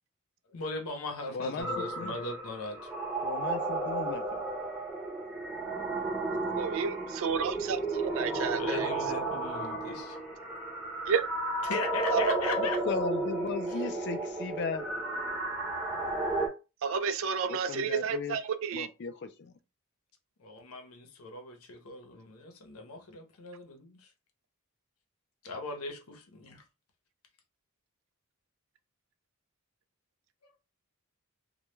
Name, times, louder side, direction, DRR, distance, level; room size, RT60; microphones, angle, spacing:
voice 1, 0.5-2.9 8.6-10.2 11.6-12.8 20.4-24.1 25.4-26.6, left 3 dB, 90° left, 0.7 m, -39 dB
voice 2, 1.3-2.1 3.2-4.4 12.6-14.9 17.5-18.4 18.7-19.6, left 5 dB, 55° left, 0.4 m, -36 dB
sound 1, 1.6-16.5, right 2 dB, 5° right, 0.7 m, -33 dB
voice 3, 6.6-8.9 11.1-11.2 12.1-12.5 16.8-18.9, right 6 dB, 65° right, 0.3 m, -31 dB
2.2 x 2.1 x 3.0 m
head